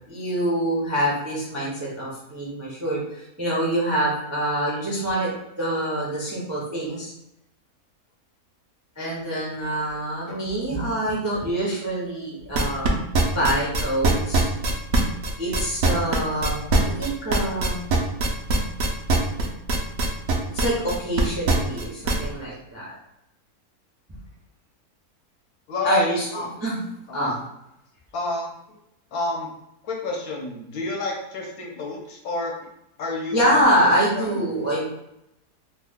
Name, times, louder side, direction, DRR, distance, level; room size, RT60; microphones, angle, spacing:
voice 1, 0.1-5.3 5.6-7.1 9.0-13.0 13.3-14.5 15.4-17.9 20.5-22.9 25.8-26.3 26.6-26.8 27.1-27.4 33.3-34.9, right 1 dB, 20° right, -6 dB, 0.5 m, -25 dB
sound 1, 12.5-22.2, right 2 dB, 65° right, 0.7 m, -21 dB
voice 2, 25.7-26.1 26.3-26.5 27.1-27.3 28.1-28.5 29.1-29.5 29.8-32.5 33.0-33.7 34.1-34.5, left 3 dB, 70° left, -1 dB, 1.2 m, -29 dB
3.0 x 2.2 x 3.5 m, 0.83 s
omnidirectional pair, 1.6 m